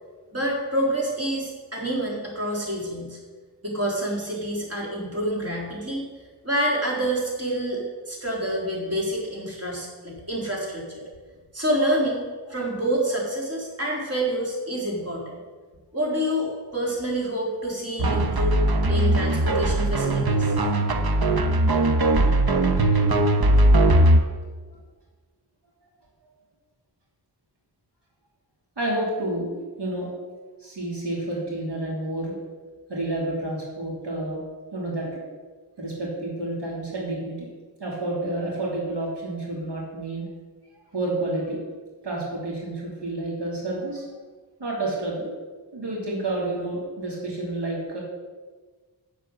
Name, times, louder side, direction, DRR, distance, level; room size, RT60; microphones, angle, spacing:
voice 1, 0.3-3.2 3.6-6.1 6.4-11.0 11.5-12.2 12.5-15.4 15.9-20.5, right 1 dB, 35° right, -3 dB, 3.7 m, -27 dB
sound 1, 18.0-24.2, right 1 dB, 65° right, 1.1 m, -19 dB
voice 2, 23.8-24.2 28.8-30.1 30.6-32.3 32.9-34.4 34.7-35.2 35.8-37.5 37.8-40.3 40.9-41.6 42.0-44.0 44.6-45.3 45.7-48.0, right 2 dB, 85° right, -3 dB, 2.8 m, -30 dB
8.9 x 7.7 x 6.7 m, 1.4 s
cardioid pair, 50°, 40 cm